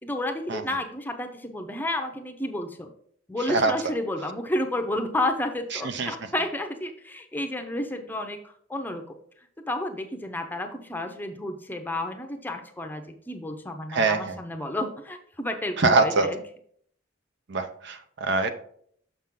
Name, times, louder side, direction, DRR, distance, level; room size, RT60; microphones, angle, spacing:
voice 1, 0.0-2.9 3.3-9.2 9.7-16.4, left 1 dB, 10° left, 5 dB, 0.6 m, -31 dB
voice 2, 5.7-6.1 13.9-14.4 15.8-16.3 17.5-18.5, right 3 dB, 60° right, 8 dB, 0.7 m, -24 dB
6.6 x 5.9 x 3.7 m, 0.62 s
head